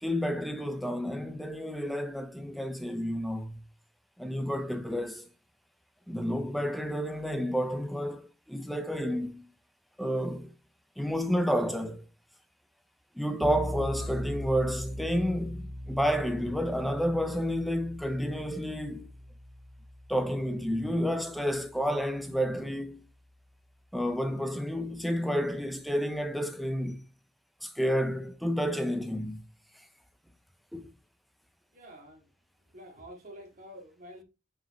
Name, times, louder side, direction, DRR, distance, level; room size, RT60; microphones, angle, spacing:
voice 1, 0.0-3.6 4.2-5.3 6.1-9.5 10.0-10.5 11.0-12.0 13.2-19.1 20.1-23.1 23.9-27.0 27.6-29.4 30.7-30.9, equal, ahead, 0.6 m, -30 dB
sound 1, 13.4-22.3, equal, 90° right, 2.3 m, -41 dB
voice 2, 31.7-32.3 32.7-34.2, equal, 40° right, 2.2 m, -48 dB
6.0 x 4.9 x 3.1 m
head